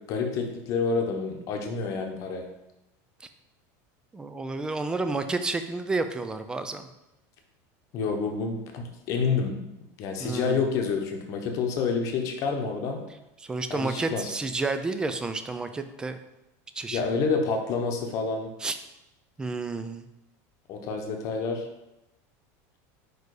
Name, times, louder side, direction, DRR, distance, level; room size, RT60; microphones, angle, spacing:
voice 1, 0.1-2.5 7.9-9.6 10.0-13.0 13.7-14.3 16.9-18.5 20.7-21.7, left 5 dB, 40° left, 3 dB, 0.9 m, -28 dB
voice 2, 4.1-6.9 10.2-10.7 13.4-16.2 16.8-17.0 18.6-18.8 19.4-20.1, right 3 dB, 10° right, 9 dB, 0.3 m, -30 dB
4.7 x 4.6 x 4.8 m, 0.92 s
supercardioid pair, 165°, 8 cm